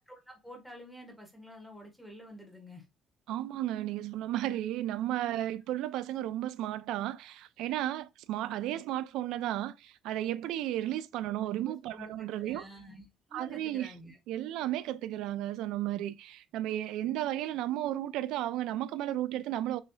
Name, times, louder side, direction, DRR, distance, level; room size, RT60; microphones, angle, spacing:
voice 1, 0.1-2.8 11.6-14.2, equal, ahead, 1.3 m, -49 dB
voice 2, 3.3-12.6 13.3-13.9 14.3-19.8, right 13 dB, 85° right, 0.3 m, -33 dB
6.7 x 3.3 x 2.2 m
cardioid pair, 140°, 0 cm